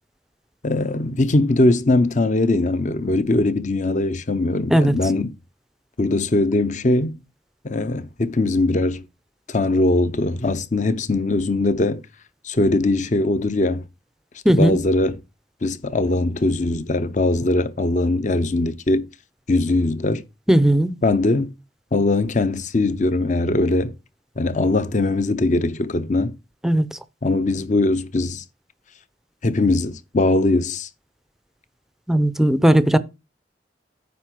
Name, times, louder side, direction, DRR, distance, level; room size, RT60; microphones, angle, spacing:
voice 1, 0.6-5.3 6.0-7.2 7.6-9.0 9.5-12.0 12.4-13.8 14.6-15.2 15.6-19.1 19.5-20.2 21.0-21.5 21.9-23.9 24.4-26.3 27.2-28.4 29.4-30.9, left 2 dB, 40° left, 0.7 m, -21 dB
voice 2, 14.4-14.8 20.5-21.0 26.6-27.0 32.1-33.0, right 1 dB, ahead, 0.5 m, -17 dB
9.5 x 3.6 x 6.1 m
head